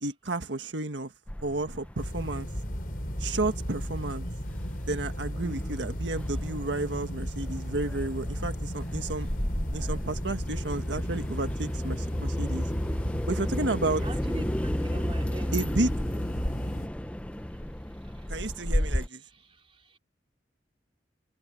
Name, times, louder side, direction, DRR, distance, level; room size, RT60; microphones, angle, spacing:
voice 1, 0.0-1.1 1.4-2.5 3.2-4.3 4.9-9.3 9.7-12.7 13.3-14.0 15.5-15.9 18.3-19.2, right 2 dB, 85° right, 1.6 m, -31 dB
sound 1, 1.3-19.1, equal, 5° left, 0.6 m, -34 dB
sound 2, 2.0-16.9, equal, 50° left, 7.2 m, -35 dB
voice 2, 14.0-15.7 18.0-18.3 19.3-20.0, right 1 dB, 30° right, 2.7 m, -44 dB
head